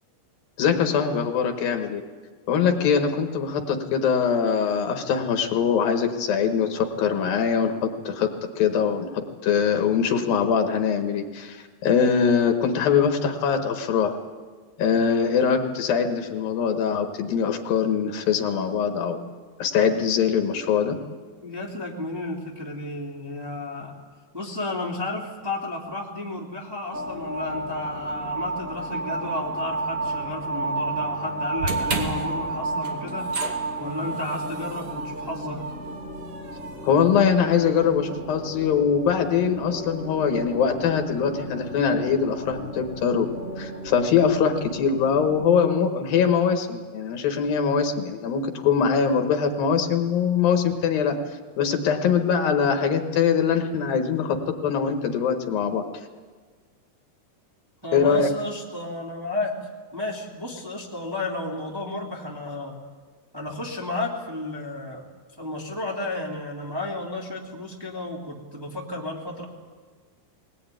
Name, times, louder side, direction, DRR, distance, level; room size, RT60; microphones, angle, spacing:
voice 1, 0.6-2.0 2.5-7.8 8.0-8.3 8.6-14.2 14.8-19.2 19.6-21.0 36.8-43.3 43.6-51.2 51.6-55.8 57.9-58.3, left 6 dB, 70° left, 5 dB, 3.2 m, -22 dB
voice 2, 21.4-24.0 24.3-33.3 33.8-35.6 57.8-59.5 59.9-62.7 63.3-65.0 65.4-69.5, left 2 dB, 5° right, -3 dB, 2.3 m, -32 dB
sound 1, 26.9-45.5, right 2 dB, 25° right, 2.3 m, -33 dB
sound 2, 31.6-37.8, right 2 dB, 40° right, 2.9 m, -35 dB
21.5 x 19.0 x 9.2 m, 1.5 s
omnidirectional pair, 4.3 m